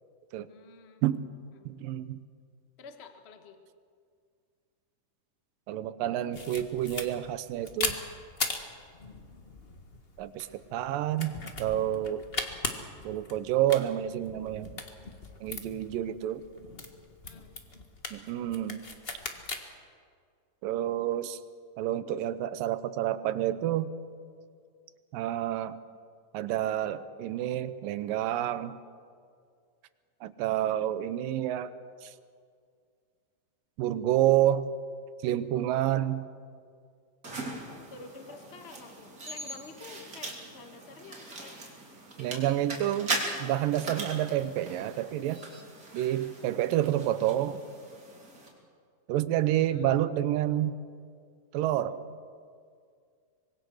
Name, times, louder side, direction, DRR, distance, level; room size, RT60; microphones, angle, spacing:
voice 1, 0.5-1.0 1.5-1.7 2.8-3.6 17.2-17.5 37.8-41.6 49.5-49.8, left 4 dB, 75° left, 6 dB, 0.6 m, -49 dB
voice 2, 1.7-2.2 5.7-8.0 10.2-12.2 13.0-14.8 15.4-16.4 18.1-18.8 20.6-21.4 21.8-23.9 25.1-25.8 26.3-28.8 30.2-31.7 32.0-32.1 33.8-34.7 35.2-36.3 42.2-45.4 45.9-47.6 49.1-50.7 51.5-52.0, right 12 dB, 85° right, 13 dB, 2.6 m, -29 dB
sound 1, 6.3-19.6, left 3 dB, 40° left, 0.7 m, -39 dB
sound 2, 37.2-48.5, right 2 dB, 25° right, 3.5 m, -40 dB
25.0 x 22.0 x 6.5 m, 2.2 s
omnidirectional pair, 3.9 m